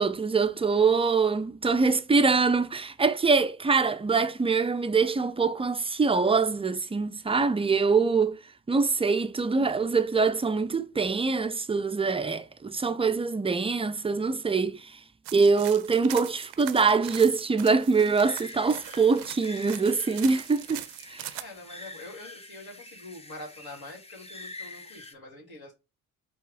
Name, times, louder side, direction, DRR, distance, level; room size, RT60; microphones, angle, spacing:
voice 1, 0.0-8.4 8.7-14.9 15.3-21.2, right 4 dB, 15° right, 0.5 m, -24 dB
sound 1, 15.3-21.4, right 14 dB, 65° right, 0.6 m, -41 dB
sound 2, 17.9-25.1, left 2 dB, 15° left, 0.8 m, -46 dB
voice 2, 21.3-25.7, left 2 dB, 55° left, 2.2 m, -45 dB
4.5 x 2.4 x 4.7 m
hypercardioid pair, 45°, 45 cm